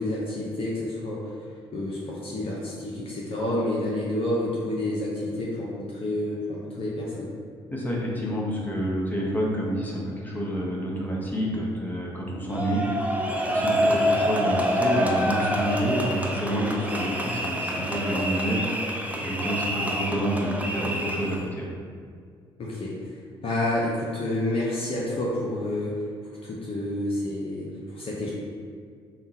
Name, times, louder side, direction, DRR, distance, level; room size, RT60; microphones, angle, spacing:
voice 1, 0.0-1.3 1.7-7.3 16.5-16.7 17.0-17.1 22.6-23.1 23.4-26.0 26.4-28.3, left 1 dB, 45° left, -5 dB, 0.7 m, -29 dB
voice 2, 7.7-12.8 13.2-21.7, equal, 15° left, -4 dB, 1.1 m, -28 dB
sound 1, 12.5-21.4, equal, 10° right, 0.5 m, -27 dB
3.7 x 2.3 x 4.1 m, 2.1 s
figure-of-eight pair, 45°, 13 cm